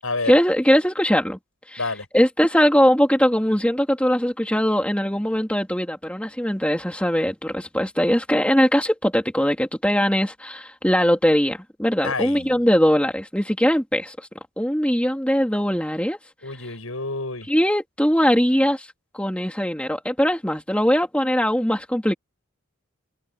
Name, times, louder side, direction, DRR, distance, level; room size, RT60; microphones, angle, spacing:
voice 1, 0.2-1.4 1.7-1.9 2.1-14.2 14.6-16.2 17.5-18.9 19.1-22.1, equal, 5° left, 2.8 m, -21 dB
voice 2, 12.0-12.6 16.4-17.5, left 3 dB, 85° left, 7.4 m, -28 dB
head